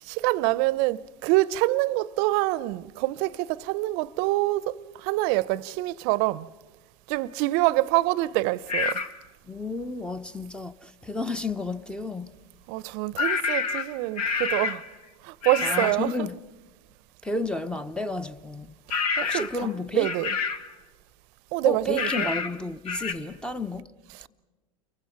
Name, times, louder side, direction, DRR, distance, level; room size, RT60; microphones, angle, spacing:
voice 1, 0.0-6.5 7.1-9.0 12.7-14.9 15.2-16.3 18.9-20.4 21.5-22.3 24.1-24.3, right 18 dB, 60° right, 0.7 m, -26 dB
sound 1, 8.7-9.1 13.2-14.9 15.4-16.0 18.9-19.6 20.0-20.7 22.0-22.6 22.9-23.1, left 5 dB, 85° left, 1.5 m, -28 dB
voice 2, 9.5-12.3 15.6-16.3 17.2-18.7 19.2-20.1 21.6-23.9, left 2 dB, 5° left, 1.0 m, -32 dB
29.0 x 23.0 x 5.9 m
hypercardioid pair, 95°, 19 cm